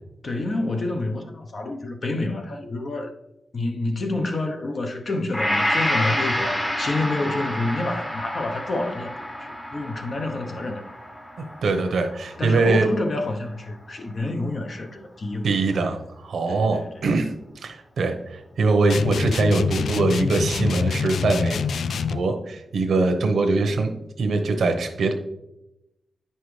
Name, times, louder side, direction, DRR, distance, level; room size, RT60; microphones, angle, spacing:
voice 1, 0.2-3.1 3.5-9.1 9.4-10.9 12.4-15.5 16.5-16.9, left 2 dB, 45° left, 0.8 m, -28 dB
Gong, 5.3-13.6 14.1-14.2, left 1 dB, 20° left, 1.1 m, -29 dB
voice 2, 11.6-12.9 15.4-17.3 17.6-21.6 22.1-25.1, right 3 dB, 80° right, 0.9 m, -22 dB
sound 1, 18.9-22.3, left 5 dB, 85° left, 0.3 m, -25 dB
9.2 x 5.6 x 3.2 m
wide cardioid pair, 145°, 0 cm